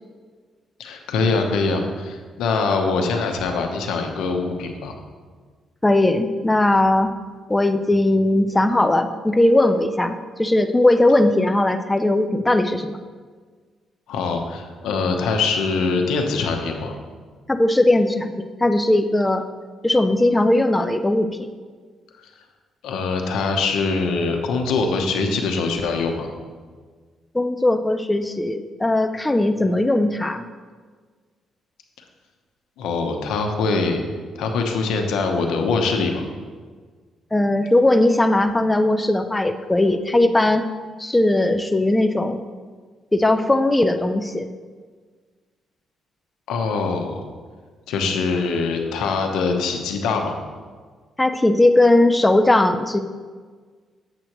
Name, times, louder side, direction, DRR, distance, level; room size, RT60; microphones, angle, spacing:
voice 1, 0.8-4.9 14.1-16.9 22.2-22.3 22.8-26.3 32.8-34.0 34.3-36.2 46.5-47.2 47.9-50.4, left 4 dB, 85° left, 4 dB, 0.9 m, -23 dB
voice 2, 5.8-7.2 7.5-13.0 17.5-19.4 19.8-21.5 27.3-30.4 37.3-40.7 41.0-42.4 43.1-44.5 51.2-53.0, left 1 dB, 10° left, 9 dB, 0.4 m, -18 dB
7.9 x 7.6 x 3.0 m, 1.5 s
cardioid pair, 90°, 0 cm